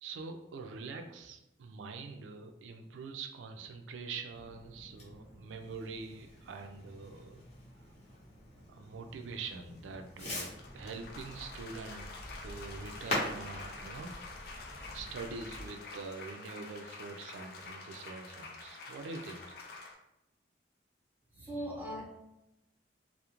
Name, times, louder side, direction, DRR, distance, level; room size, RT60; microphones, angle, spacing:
voice 1, 0.0-7.4 8.7-12.1 12.4-14.2 14.9-19.6 21.4-21.7, right 4 dB, 90° right, 5 dB, 0.3 m, -44 dB
Fireworks, 4.3-15.7, left 1 dB, 35° left, 0.7 m, -44 dB
sound 1, 6.4-6.5 9.5-19.9, left 3 dB, 55° left, 0.3 m, -48 dB
voice 2, 21.4-22.0, equal, 10° right, -5 dB, 0.7 m, -39 dB
2.4 x 2.0 x 2.9 m, 0.91 s
head